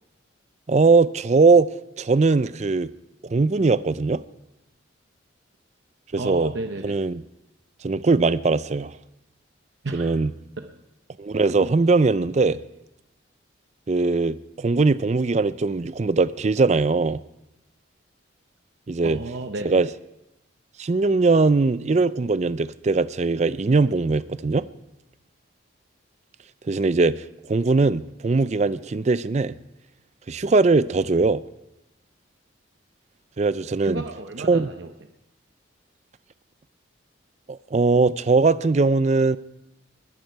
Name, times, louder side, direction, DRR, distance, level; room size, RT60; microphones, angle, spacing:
voice 1, 0.7-1.7 2.0-2.9 3.2-4.2 6.1-6.5 6.8-7.2 7.8-8.9 9.9-10.3 11.2-12.6 13.9-17.2 18.9-19.2 19.7-19.9 20.8-24.7 26.7-27.2 27.5-29.5 30.3-31.4 33.4-34.0 34.5-34.7 37.5-39.4, right 3 dB, 35° right, 0.4 m, -20 dB
voice 2, 6.2-7.0 9.8-10.2 10.6-10.7 19.0-19.9 33.8-34.9, right 2 dB, 60° right, 0.8 m, -33 dB
21.0 x 10.5 x 4.6 m
head